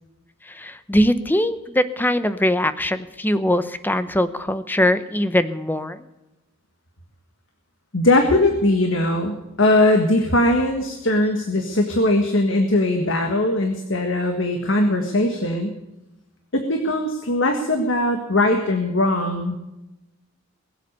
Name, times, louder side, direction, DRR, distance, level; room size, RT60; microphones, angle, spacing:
voice 1, 0.4-6.1, left 1 dB, 10° left, 12 dB, 0.8 m, -21 dB
voice 2, 7.9-15.8 16.5-19.5, left 1 dB, 65° left, 4 dB, 1.7 m, -20 dB
21.5 x 8.1 x 6.7 m, 0.97 s
head